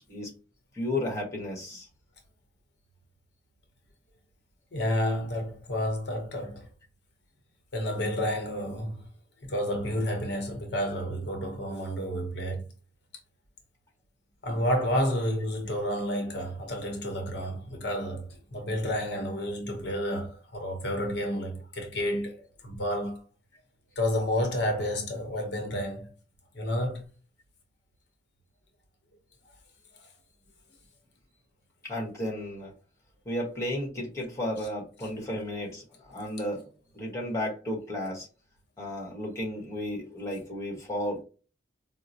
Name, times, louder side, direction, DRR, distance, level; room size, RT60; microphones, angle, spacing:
voice 1, 0.7-1.9 31.8-32.7 33.2-36.7 36.9-38.3 38.8-41.2, left 1 dB, 15° left, 1.1 m, -33 dB
voice 2, 4.7-6.7 7.7-9.1 9.4-12.7 14.4-23.2 24.0-26.1 26.5-27.1 29.9-30.1, equal, 60° left, 0.8 m, -30 dB
4.6 x 2.0 x 2.6 m
head